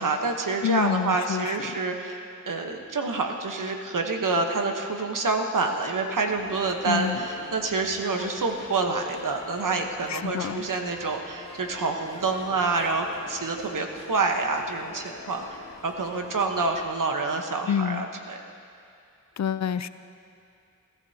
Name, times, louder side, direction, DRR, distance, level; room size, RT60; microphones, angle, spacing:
voice 1, 0.0-2.2 2.5-15.4 15.8-18.4, right 3 dB, 75° right, 3 dB, 1.2 m, -27 dB
voice 2, 0.6-1.6 6.9-7.2 10.1-10.7 17.7-18.1 19.4-19.9, left 8 dB, 60° left, 13 dB, 0.5 m, -27 dB
sound 1, 6.3-16.9, left 3 dB, 90° left, 1.5 m, -44 dB
22.0 x 13.0 x 2.9 m, 2.5 s
cardioid pair, 45°, 32 cm